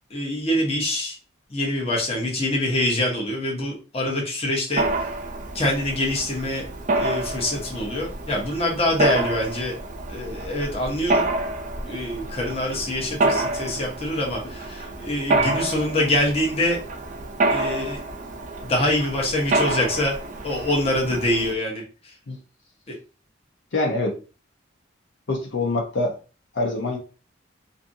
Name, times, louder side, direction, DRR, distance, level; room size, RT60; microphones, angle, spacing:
voice 1, 0.1-1.2 1.5-5.1 5.5-6.6 7.0-9.8 10.1-11.3 11.9-16.8 17.5-18.0 18.6-20.2 20.4-22.1 22.9-23.0, left 1 dB, 30° left, -1 dB, 0.8 m, -25 dB
Mechanisms, 4.8-21.5, right 2 dB, 40° right, 0.4 m, -28 dB
voice 2, 23.7-24.2 25.3-26.2 26.5-27.0, left 2 dB, 70° left, 0 dB, 0.6 m, -24 dB
2.6 x 2.6 x 2.6 m, 0.34 s
head